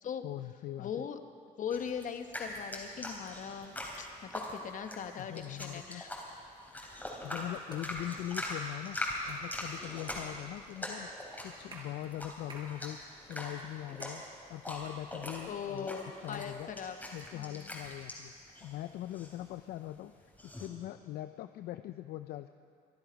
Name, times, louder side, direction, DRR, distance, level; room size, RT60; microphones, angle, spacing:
voice 1, 0.2-1.0 5.1-6.0 7.2-13.0 13.3-14.2 14.5-16.7 17.1-22.5, left 14 dB, 70° left, 10 dB, 0.5 m, -42 dB
voice 2, 0.8-1.2 1.6-6.1 15.5-17.0 17.3-17.7, left 7 dB, 50° left, 8 dB, 1.1 m, -40 dB
sound 1, 1.7-20.7, left 1 dB, 10° left, 3.5 m, -42 dB
sound 2, 7.7-7.9 8.4-8.6 9.3-9.5 10.1-10.3 10.9-11.0 11.5-11.9 12.5-12.7 13.1-13.7 14.0-14.1 14.9-15.4 16.3-16.5, right 2 dB, 30° right, 4.8 m, -51 dB
25.0 x 10.5 x 5.1 m, 2.3 s
cardioid pair, 110°, 17 cm